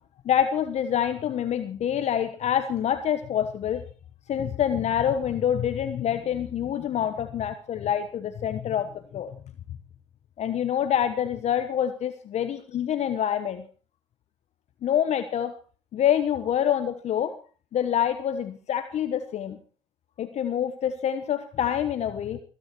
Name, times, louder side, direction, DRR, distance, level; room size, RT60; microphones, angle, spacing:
voice 1, 0.2-3.8 4.3-9.3 10.4-13.6 14.8-15.5 15.9-17.4 17.7-19.6 20.2-22.4, left 9 dB, 50° left, 10 dB, 1.2 m, -26 dB
21.5 x 9.8 x 4.5 m, 0.39 s
hypercardioid pair, 65°, 14 cm